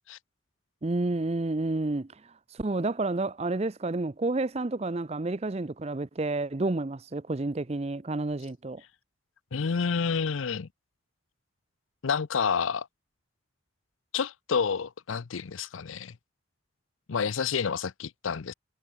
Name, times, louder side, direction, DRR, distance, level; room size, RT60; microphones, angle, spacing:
voice 1, 0.8-2.1 2.5-8.8, right 2 dB, 30° right, 0.5 m, -30 dB
voice 2, 9.5-10.7 12.0-12.9 14.1-16.1 17.1-18.5, left 6 dB, 85° left, 0.6 m, -29 dB
head